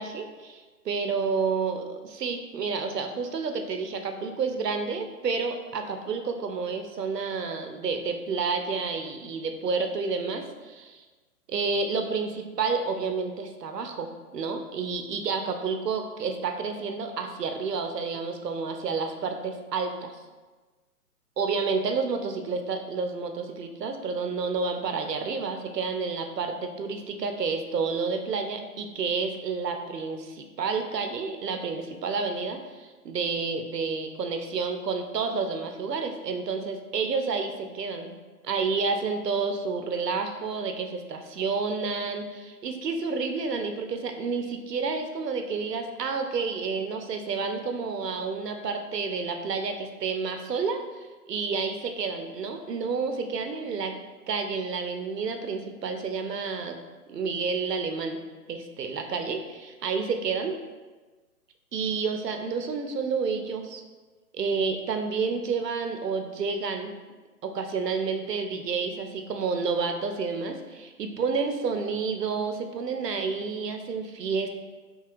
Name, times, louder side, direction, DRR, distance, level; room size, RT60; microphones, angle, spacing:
voice 1, 0.0-11.0 11.5-20.2 21.4-38.1 38.4-53.9 54.3-56.8 57.1-58.2 58.5-60.6 61.7-63.8 64.3-66.9 67.4-74.5, right 4 dB, 90° right, 5 dB, 0.6 m, -30 dB
4.6 x 2.8 x 2.4 m, 1.3 s
figure-of-eight pair, 130°, 47 cm